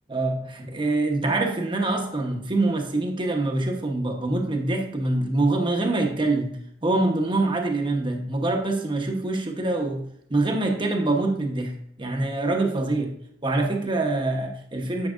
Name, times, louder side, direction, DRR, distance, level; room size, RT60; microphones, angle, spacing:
voice 1, 0.1-6.5 6.8-10.0 10.3-13.1 13.4-15.1, right 2 dB, 30° right, 2 dB, 1.0 m, -25 dB
9.9 x 6.8 x 2.5 m, 0.70 s
head